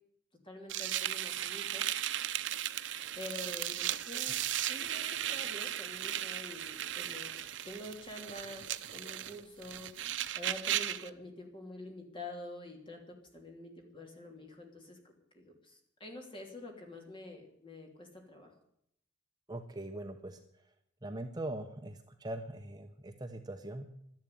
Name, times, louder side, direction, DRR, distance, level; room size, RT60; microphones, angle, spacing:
voice 1, 0.4-2.1 3.1-4.4 4.7-7.4 7.7-9.9 10.3-18.5, left 1 dB, 25° left, 2 dB, 3.1 m, -47 dB
sound 1, 0.7-11.1, right 11 dB, 70° right, 0.7 m, -36 dB
voice 2, 19.5-20.4 21.0-23.9, right 1 dB, 20° right, 5 dB, 1.0 m, -41 dB
12.5 x 10.5 x 9.3 m, 0.74 s
head